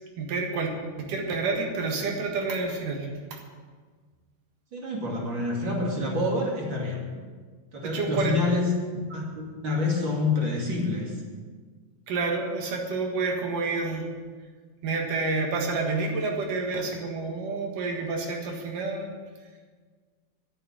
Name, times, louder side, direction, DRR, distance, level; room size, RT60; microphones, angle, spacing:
voice 1, 0.2-0.7 1.0-3.1 7.8-8.4 12.1-14.1 14.8-19.1, right 3 dB, 65° right, 1 dB, 3.1 m, -29 dB
voice 2, 4.7-7.1 7.7-11.2, left 2 dB, 35° right, -2 dB, 2.9 m, -27 dB
11.0 x 8.8 x 8.8 m, 1.5 s
omnidirectional pair, 4.2 m